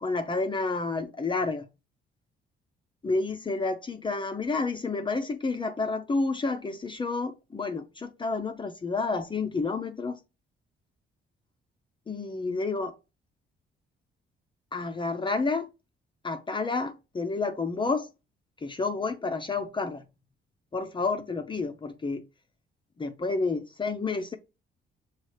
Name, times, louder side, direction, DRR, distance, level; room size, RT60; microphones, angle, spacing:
voice 1, 0.0-1.7 3.0-10.2 12.1-13.0 14.7-15.7 16.2-18.1 18.6-20.0 20.7-22.2 23.0-24.4, left 3 dB, 25° left, 0.5 m, -30 dB
6.0 x 2.4 x 3.2 m
cardioid pair, 90°, 20 cm